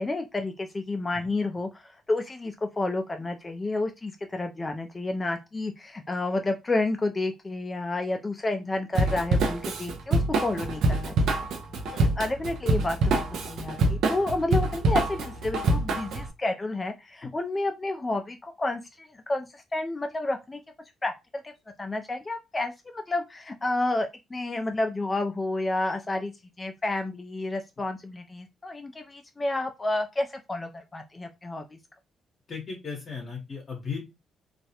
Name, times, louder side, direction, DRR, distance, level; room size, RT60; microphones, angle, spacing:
voice 1, 0.0-11.5 12.2-20.6 21.0-21.1 21.4-21.5 21.8-26.3 26.6-31.6, left 2 dB, 25° left, 5 dB, 0.3 m, -30 dB
Drum kit / Drum, 8.9-16.3, right 2 dB, 75° right, 0.5 m, -25 dB
voice 2, 11.7-12.0 32.5-34.1, left 5 dB, 50° left, -1 dB, 0.8 m, -36 dB
2.3 x 2.0 x 2.7 m, 0.23 s
cardioid pair, 90°, 0 cm